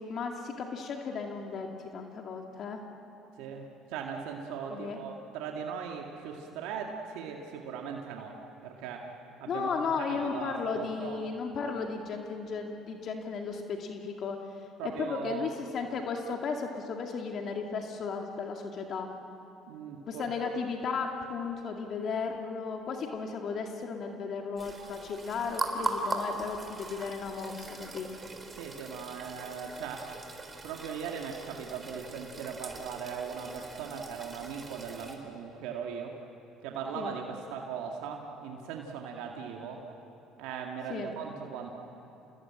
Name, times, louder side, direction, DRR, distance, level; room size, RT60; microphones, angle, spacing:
voice 1, 0.0-1.7 1.9-2.8 4.7-5.0 9.5-14.4 14.8-19.1 20.1-28.1 36.9-37.2 40.9-41.1, left 5 dB, 55° left, 2 dB, 2.2 m, -35 dB
voice 2, 3.4-9.1 9.4-11.2 14.8-15.5 19.7-20.3 28.5-30.1 30.6-36.2 36.6-39.8 40.4-41.7, right 6 dB, 80° right, 1 dB, 2.1 m, -39 dB
sound 1, 24.6-35.2, right 3 dB, 25° right, 3.9 m, -40 dB
28.0 x 20.0 x 8.8 m, 2.9 s
supercardioid pair, 75°, 0 cm